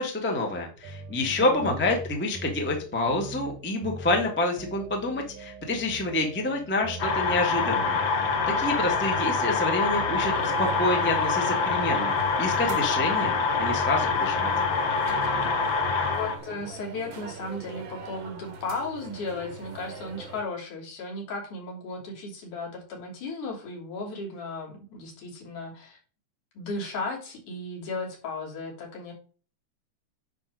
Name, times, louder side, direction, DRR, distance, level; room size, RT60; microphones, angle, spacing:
voice 1, 0.0-12.1 12.4-14.5, left 2 dB, 10° left, 1 dB, 0.7 m, -28 dB
sound 1, 0.8-16.4, right 2 dB, 85° right, 2.9 m, -41 dB
voice 2, 1.2-1.7 16.0-26.0 26.5-29.1, left 3 dB, 75° left, -2 dB, 4.3 m, -35 dB
sound 2, 7.0-16.4, left 4 dB, 55° left, 1.4 m, -25 dB
sound 3, 10.3-20.4, right 5 dB, 55° right, 1.4 m, -41 dB
9.9 x 3.5 x 6.3 m, 0.39 s
omnidirectional pair, 3.6 m